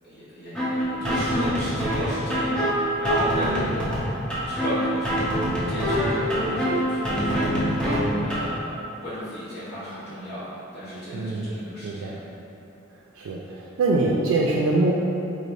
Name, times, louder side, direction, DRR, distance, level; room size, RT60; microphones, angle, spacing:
voice 1, 0.0-3.9 4.5-5.2 5.7-8.0 8.2-12.1 12.5-12.6, equal, 55° left, -13 dB, 1.5 m, -35 dB
sound 1, 0.5-8.5, equal, 5° left, 0.7 m, -25 dB
voice 2, 11.1-11.5 11.8-12.2 13.2-14.9, right 2 dB, 90° right, -2 dB, 0.3 m, -24 dB
4.2 x 3.2 x 2.6 m, 2.8 s
head